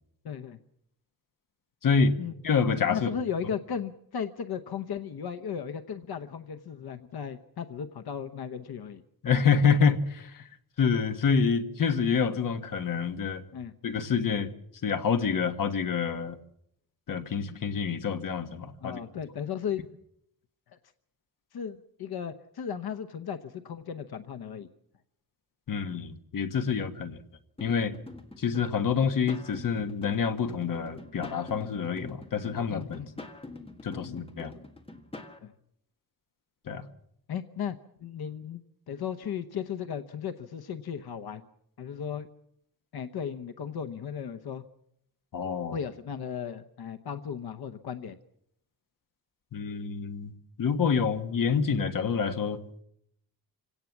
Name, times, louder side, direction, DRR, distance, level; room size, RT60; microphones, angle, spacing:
voice 1, 0.2-0.6 2.2-2.3 2.9-9.0 13.5-13.7 18.8-19.9 21.5-24.7 32.7-33.2 34.0-34.2 35.4-35.5 37.3-38.6 38.9-41.4 41.8-42.3 42.9-44.6 45.7-48.2, left 7 dB, 85° left, 8 dB, 1.0 m, -36 dB
voice 2, 1.8-2.1 2.4-3.1 9.2-10.4 10.8-13.4 13.8-14.5 14.8-16.4 17.1-19.0 25.7-27.2 27.6-27.9 28.4-33.0 33.8-34.5 36.7-36.8 45.3-45.8 49.5-50.3 50.6-52.6, left 6 dB, 60° left, 7 dB, 1.5 m, -27 dB
sound 1, 27.6-35.4, left 2 dB, 15° left, 1.7 m, -45 dB
26.0 x 17.5 x 7.3 m, 0.75 s
wide cardioid pair, 180°, 37 cm